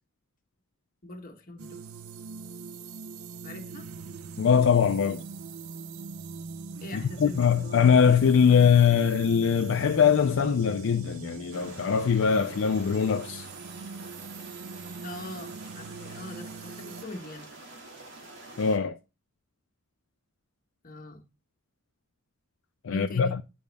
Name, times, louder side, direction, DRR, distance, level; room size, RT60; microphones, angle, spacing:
voice 1, 1.0-1.8 3.4-3.9 6.8-8.0 15.0-17.5 20.8-21.2 22.9-23.3, left 1 dB, 45° left, 1.5 m, -41 dB
sound 1, 1.6-17.0, right 4 dB, 90° right, 0.5 m, -42 dB
voice 2, 4.4-5.2 6.9-13.5 18.6-19.0 22.8-23.4, left 7 dB, 65° left, 0.4 m, -22 dB
sound 2, 11.5-18.8, right 2 dB, 60° right, 2.0 m, -47 dB
8.6 x 5.2 x 3.4 m
head